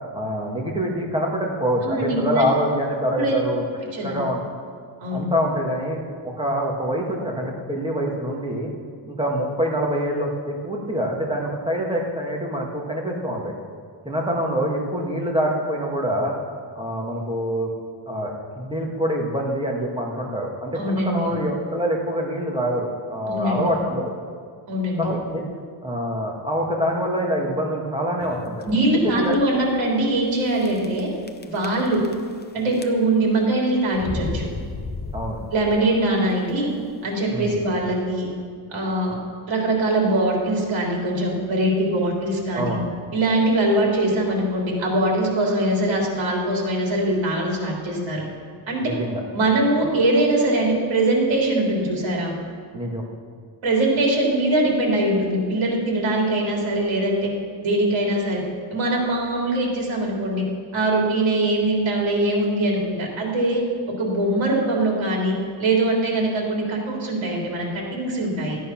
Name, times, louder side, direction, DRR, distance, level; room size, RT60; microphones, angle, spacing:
voice 1, 0.1-3.6 4.0-4.4 5.1-8.7 9.0-13.5 14.0-16.3 16.8-17.7 18.1-24.1 25.0-25.4 25.8-28.6 29.0-29.3 35.1-35.4 37.3-37.6 42.5-42.8 48.8-49.2 52.7-53.0, equal, 10° right, -1 dB, 1.8 m, -25 dB
voice 2, 1.8-2.4 3.2-3.3 3.9-4.1 5.0-5.2 20.7-21.4 23.3-23.7 24.7-25.1 28.7-31.1 31.4-32.0 32.5-34.5 35.5-36.7 37.0-38.3 38.7-39.2 39.5-42.8 43.1-48.2 48.7-48.9 49.3-52.3 53.6-57.3 57.6-58.4 58.7-60.4 60.7-63.6 64.0-65.3 65.6-68.6, right 1 dB, 70° right, -1 dB, 3.4 m, -22 dB
sound 1, 28.2-28.6 29.3-29.4 29.6-29.7 30.6-31.0 31.3-32.4 32.7-33.3 33.9-35.9, left 3 dB, 20° left, 0.6 m, -33 dB
14.0 x 9.3 x 5.9 m, 2.1 s
wide cardioid pair, 150°, 48 cm